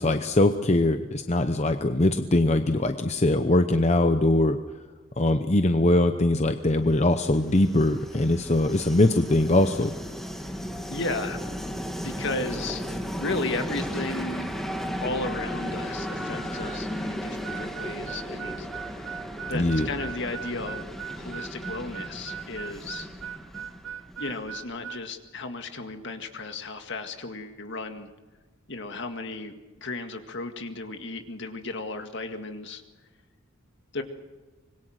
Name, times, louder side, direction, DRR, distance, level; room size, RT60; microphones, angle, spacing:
voice 1, 0.0-4.6 5.2-9.9 19.5-19.9, left 1 dB, 30° left, 8 dB, 0.8 m, -22 dB
Train, 6.9-24.7, equal, ahead, 1.8 m, -35 dB
voice 2, 10.9-11.4 12.0-12.8 13.2-14.5 15.0-19.2 19.5-20.8 21.1-23.1 24.2-28.1 28.7-32.8 33.9-34.0, left 2 dB, 60° left, 6 dB, 1.9 m, -34 dB
Harmonica, 17.4-25.0, right 8 dB, 70° right, 0.9 m, -39 dB
25.5 x 21.5 x 6.5 m, 1.2 s
head